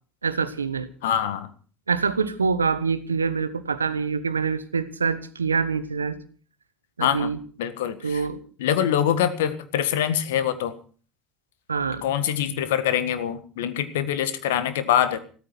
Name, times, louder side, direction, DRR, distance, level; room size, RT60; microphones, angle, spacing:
voice 1, 0.2-0.9 1.9-6.2 7.0-7.4 8.0-8.4 11.7-12.0, right 5 dB, 90° right, 13 dB, 1.1 m, -25 dB
voice 2, 1.0-1.5 7.0-7.3 7.6-8.2 8.6-10.7 12.0-15.2, left 10 dB, 75° left, 12 dB, 1.7 m, -24 dB
15.5 x 14.0 x 5.8 m, 0.41 s
figure-of-eight pair, 65°, 0 cm